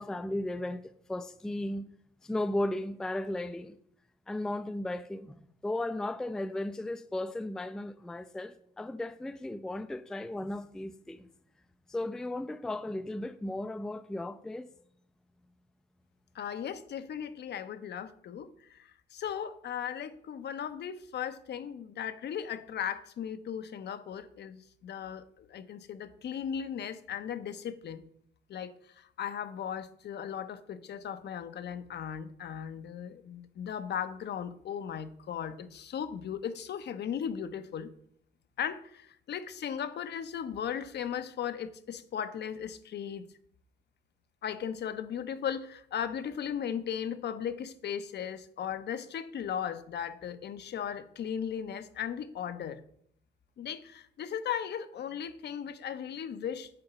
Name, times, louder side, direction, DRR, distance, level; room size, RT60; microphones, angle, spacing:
voice 1, 0.0-1.9 2.2-3.8 4.3-11.3 11.9-14.7, left 1 dB, 5° left, 0.3 m, -35 dB
voice 2, 16.3-28.1 28.5-37.9 38.6-43.2 44.4-52.8 53.6-56.7, left 8 dB, 60° left, 0.6 m, -37 dB
6.8 x 3.9 x 5.7 m
cardioid pair, 90°, 20 cm